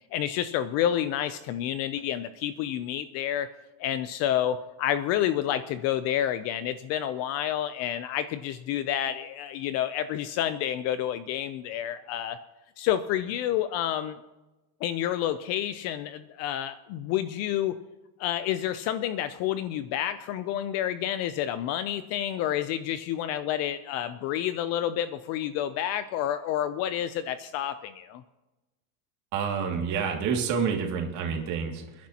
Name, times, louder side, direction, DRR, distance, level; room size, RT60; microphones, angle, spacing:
voice 1, 0.1-3.5 3.8-12.4 12.8-14.2 14.8-17.8 18.2-28.2, left 11 dB, 40° left, 12 dB, 0.4 m, -29 dB
voice 2, 29.3-32.1, right 6 dB, 40° right, 2 dB, 2.3 m, -28 dB
28.0 x 10.5 x 2.8 m, 1.1 s
supercardioid pair, 160°, 43 cm